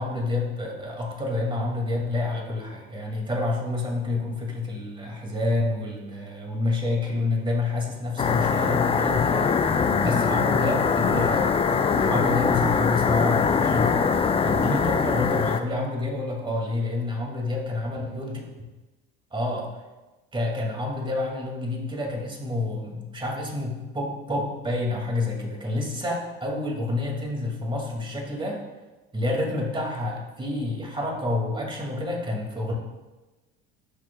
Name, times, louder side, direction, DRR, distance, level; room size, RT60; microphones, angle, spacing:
voice 1, 0.0-11.6 11.9-14.0 14.4-18.4 19.3-19.7 20.3-28.6 29.1-32.7, left 2 dB, 15° right, 0 dB, 2.2 m, -28 dB
sound 1, 8.2-15.6, left 6 dB, 20° left, 0.5 m, -22 dB
12.0 x 6.5 x 2.3 m, 1.1 s
hypercardioid pair, 80°, 29 cm